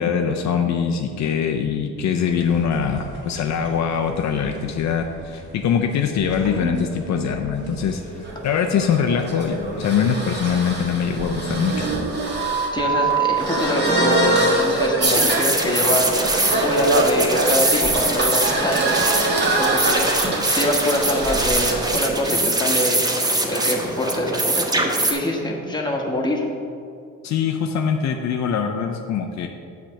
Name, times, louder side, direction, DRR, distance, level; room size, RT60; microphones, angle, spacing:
voice 1, 0.0-8.0 8.4-11.9 27.2-29.5, left 7 dB, 65° left, 4 dB, 0.6 m, -23 dB
sound 1, 2.2-12.1, right 2 dB, 85° right, 1.6 m, -35 dB
sound 2, 8.2-22.0, right 2 dB, 35° right, 1.5 m, -23 dB
voice 2, 12.7-16.1 16.6-19.2 19.6-20.1 20.5-23.0 23.5-26.4, left 1 dB, 15° left, -1 dB, 1.3 m, -24 dB
sound 3, 15.0-25.1, right 2 dB, 15° right, 0.8 m, -23 dB
7.5 x 3.5 x 6.4 m, 2.4 s
cardioid pair, 90°, 30 cm